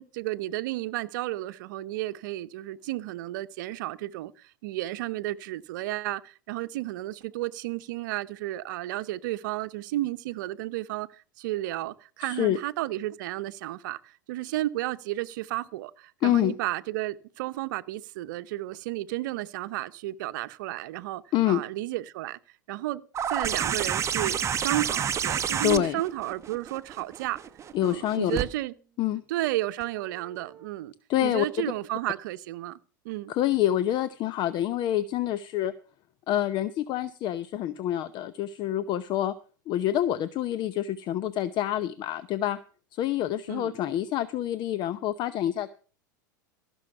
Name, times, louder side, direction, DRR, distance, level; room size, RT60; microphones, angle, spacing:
voice 1, 0.0-22.4 22.7-23.0 23.3-27.4 27.8-28.7 29.3-30.9 31.2-32.8 33.0-33.3 43.5-43.8, right 16 dB, 70° right, 0.8 m, -32 dB
voice 2, 12.2-12.6 16.2-16.5 21.3-21.6 25.6-26.0 27.7-28.4 29.0-29.2 31.1-31.7 33.3-35.7 36.3-39.3 39.7-42.6 42.9-45.7, left 12 dB, 45° left, 0.8 m, -27 dB
sound 1, 23.1-28.4 29.8-29.9, right 8 dB, 25° right, 0.9 m, -29 dB
15.0 x 6.3 x 6.8 m
hypercardioid pair, 105°, 11 cm